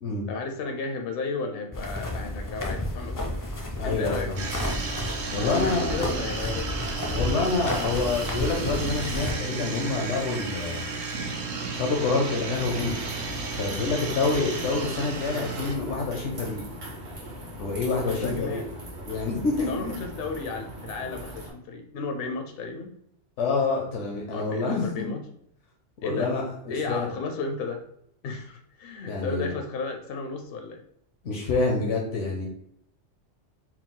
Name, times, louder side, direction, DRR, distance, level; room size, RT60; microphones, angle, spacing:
voice 1, 0.3-3.4 3.8-4.3 5.4-6.7 13.7-13.9 18.1-18.7 19.7-22.9 24.3-25.2 26.0-26.3 26.7-27.8 28.2-30.8, left 4 dB, 65° left, 5 dB, 0.7 m, -33 dB
sound 1, 1.7-9.3, left 1 dB, 25° left, 0.4 m, -32 dB
voice 2, 3.8-4.4 5.3-6.1 7.1-10.9 11.7-12.9 13.6-16.6 17.6-18.6 19.1-20.0 23.4-25.1 26.0-27.1 29.1-29.6 31.2-32.5, left 3 dB, 90° left, 0 dB, 1.1 m, -27 dB
sound 2, 4.4-15.8, right 4 dB, 75° right, 1.0 m, -33 dB
sound 3, 12.5-21.5, equal, 55° right, 1.3 m, -39 dB
4.5 x 2.1 x 3.8 m, 0.72 s
omnidirectional pair, 1.2 m